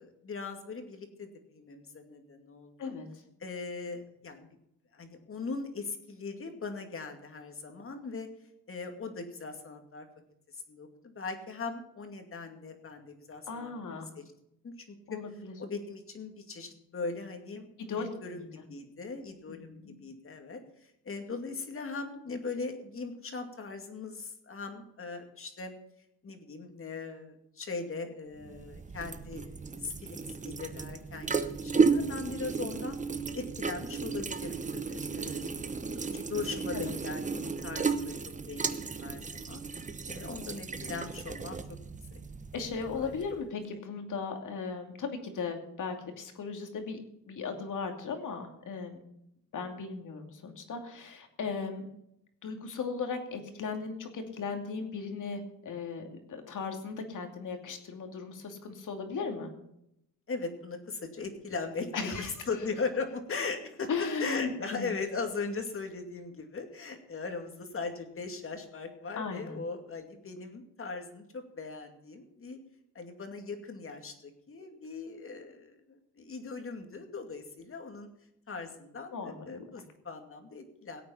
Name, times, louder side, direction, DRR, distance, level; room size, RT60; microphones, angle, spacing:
voice 1, 0.0-2.9 3.4-4.5 4.9-8.3 8.7-10.1 10.5-14.2 14.6-15.0 15.6-25.7 26.2-33.0 33.3-35.5 35.9-38.1 38.5-39.6 40.1-41.8 42.1-42.2 42.9-43.2 60.3-72.6 72.9-78.1 78.5-81.0, left 4 dB, 35° left, 5 dB, 2.4 m, -39 dB
voice 2, 13.5-14.1 15.1-15.5 17.9-18.5 19.5-19.9 36.7-36.9 42.5-47.0 47.3-49.0 49.5-51.9 52.4-59.5 61.9-62.3 63.9-64.9 69.2-69.6 79.1-79.6, left 5 dB, 55° left, 5 dB, 2.7 m, -37 dB
sound 1, 28.4-43.4, right 4 dB, 20° right, 0.9 m, -34 dB
17.5 x 8.5 x 5.8 m, 0.80 s
cardioid pair, 105°, 37 cm